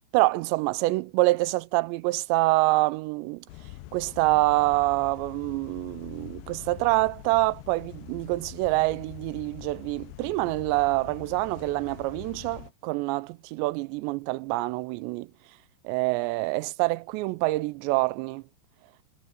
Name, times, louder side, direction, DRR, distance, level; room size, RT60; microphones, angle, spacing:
voice 1, 0.1-3.5 3.9-15.3 15.8-18.4, right 21 dB, 85° right, 2.8 m, -26 dB
sound 1, 3.5-12.7, left 16 dB, 80° left, 2.6 m, -44 dB
omnidirectional pair, 5.0 m